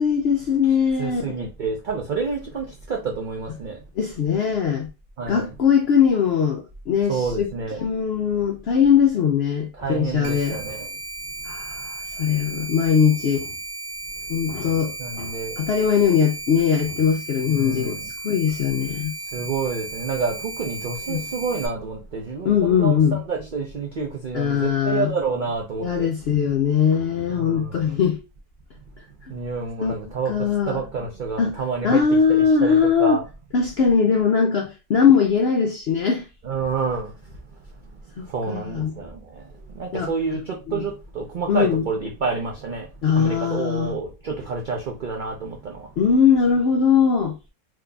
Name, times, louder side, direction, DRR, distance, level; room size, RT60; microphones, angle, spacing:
voice 1, 0.0-1.2 4.0-4.9 5.3-7.5 7.7-10.6 11.4-13.5 14.3-18.0 18.2-19.1 21.1-21.2 22.4-23.2 24.3-25.1 25.8-28.2 29.2-29.3 29.8-30.0 30.3-30.8 31.4-31.6 31.8-33.2 33.5-36.3 38.2-38.9 39.9-40.1 40.7-40.8 41.5-41.8 43.0-44.0 46.0-47.3, left 7 dB, 70° left, 0.6 m, -20 dB
voice 2, 1.0-3.8 5.2-5.5 7.1-7.8 9.8-10.9 11.8-11.9 15.0-15.7 17.5-18.0 19.3-26.1 27.3-28.0 29.3-32.0 32.3-33.2 36.4-37.4 37.9-45.9, right 4 dB, 65° right, 0.5 m, -29 dB
sound 1, 10.2-21.7, right 3 dB, 80° right, 1.1 m, -35 dB
3.9 x 2.9 x 2.2 m
omnidirectional pair, 1.6 m